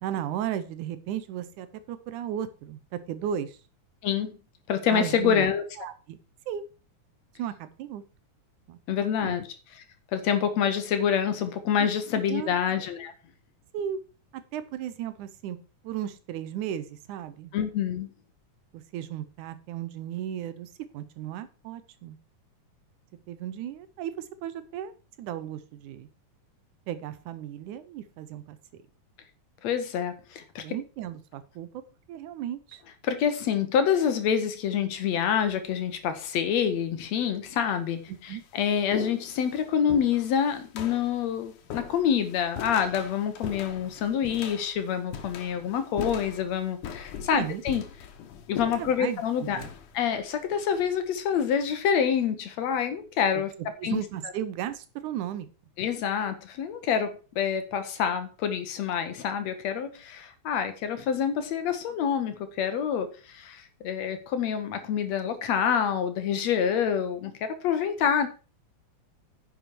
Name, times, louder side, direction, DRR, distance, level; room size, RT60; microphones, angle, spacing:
voice 1, 0.0-3.6 4.9-5.5 5.8-6.2 6.5-6.6 7.4-8.0 8.7-9.3 11.8-11.9 12.3-12.5 13.7-14.0 14.3-15.6 15.8-17.5 18.7-22.2 23.3-24.9 25.2-26.1 26.9-28.6 30.6-31.8 32.1-32.8 38.3-38.4 47.3-47.6 48.8-49.7 53.3-53.4 53.8-55.5, right 10 dB, 80° right, 13 dB, 2.3 m, -35 dB
voice 2, 4.7-5.6 8.9-9.4 10.1-13.1 17.5-18.1 29.6-30.6 33.0-47.8 48.5-49.6 49.9-53.5 53.8-54.0 55.8-68.3, left 8 dB, 65° left, 9 dB, 2.2 m, -27 dB
sound 1, 35.1-35.6 36.5-36.6 37.5-37.6 37.9-51.5, left 8 dB, 85° left, 2.7 m, -41 dB
10.0 x 6.8 x 4.6 m, 0.34 s
omnidirectional pair, 3.5 m